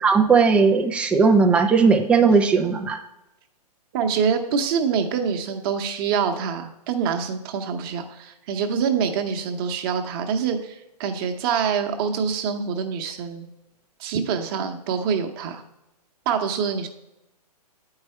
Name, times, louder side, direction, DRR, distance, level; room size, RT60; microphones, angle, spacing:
voice 1, 0.0-3.0, right 5 dB, 5° right, 4 dB, 0.4 m, -17 dB
voice 2, 3.9-13.5 14.0-15.6 16.3-16.9, right 6 dB, 35° right, 5 dB, 1.0 m, -25 dB
8.7 x 4.8 x 4.3 m, 0.90 s
hypercardioid pair, 135°, 20 cm